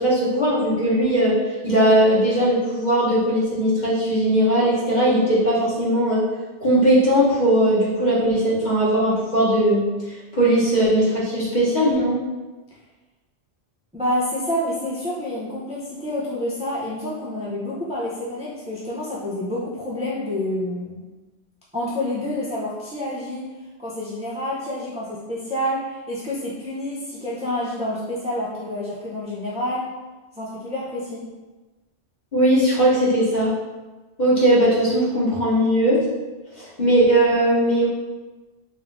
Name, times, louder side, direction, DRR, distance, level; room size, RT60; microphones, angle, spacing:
voice 1, 0.0-1.3 1.6-6.2 6.6-9.9 10.3-12.2 32.3-33.5 34.2-36.0 36.6-37.9, right 1 dB, 40° left, -8 dB, 1.2 m, -19 dB
voice 2, 13.9-21.0 21.7-23.5 23.8-29.9 30.4-31.2, left 1 dB, 10° right, -7 dB, 0.4 m, -28 dB
3.5 x 2.6 x 3.5 m, 1.2 s
omnidirectional pair, 1.2 m